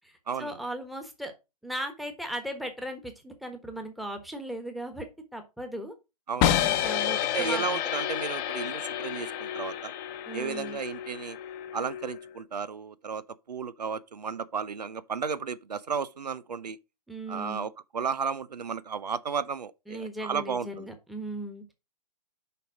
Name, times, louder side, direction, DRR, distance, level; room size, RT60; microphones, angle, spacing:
voice 1, 0.4-1.3 1.6-5.1 5.3-5.9 6.6-7.7 10.3-10.8 17.1-17.7 19.9-21.7, right 1 dB, ahead, 1.3 m, -37 dB
voice 2, 6.3-6.6 7.3-9.9 10.3-11.4 11.7-13.2 13.5-16.8 17.3-20.9, right 6 dB, 85° right, 0.7 m, -33 dB
sound 1, 6.4-12.4, left 11 dB, 30° left, 0.9 m, -30 dB
6.7 x 5.3 x 4.8 m
hypercardioid pair, 130°, 20 cm